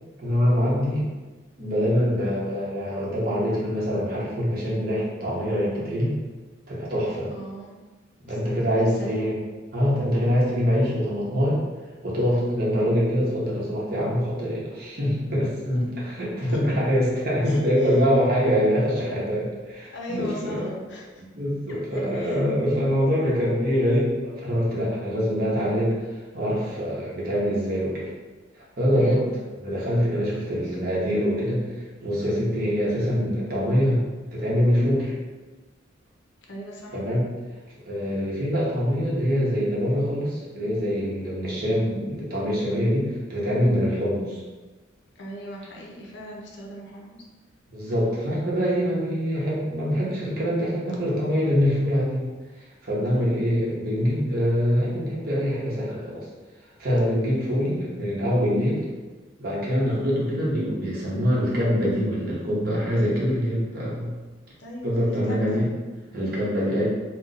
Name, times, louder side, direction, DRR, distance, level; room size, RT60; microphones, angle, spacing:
voice 1, 0.2-1.1 1.6-6.1 6.7-7.3 8.2-9.4 9.7-11.6 12.0-20.8 21.2-26.0 26.3-28.1 28.8-29.2 29.6-31.7 32.0-35.1 36.9-37.3 37.8-44.4 47.7-52.3 52.6-56.2 56.8-58.8 59.4-64.1 64.8-65.7 66.1-66.8, equal, 50° right, -6 dB, 0.9 m, -24 dB
voice 2, 7.3-7.8 8.3-8.4 8.7-9.3 15.7-15.8 16.5-16.6 17.4-18.0 19.9-21.0 21.7-22.4 23.3-23.4 28.9-29.3 30.6-30.8 36.5-37.0 45.2-47.2 53.1-53.3 64.6-65.6, equal, 60° left, -2 dB, 0.6 m, -38 dB
2.5 x 2.2 x 4.0 m, 1.3 s
head